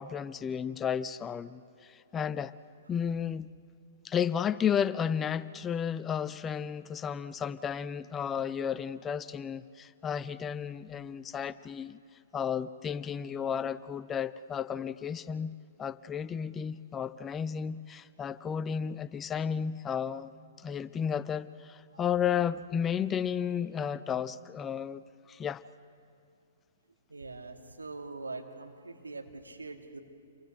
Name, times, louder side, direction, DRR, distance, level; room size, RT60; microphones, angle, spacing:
voice 1, 0.0-2.5 2.9-3.5 4.0-12.0 12.3-20.3 20.6-25.6, left 8 dB, 20° left, 16 dB, 0.6 m, -33 dB
voice 2, 27.1-30.0, right 3 dB, 90° right, 4 dB, 2.3 m, -43 dB
29.0 x 23.5 x 6.5 m, 2.4 s
figure-of-eight pair, 120°, 0 cm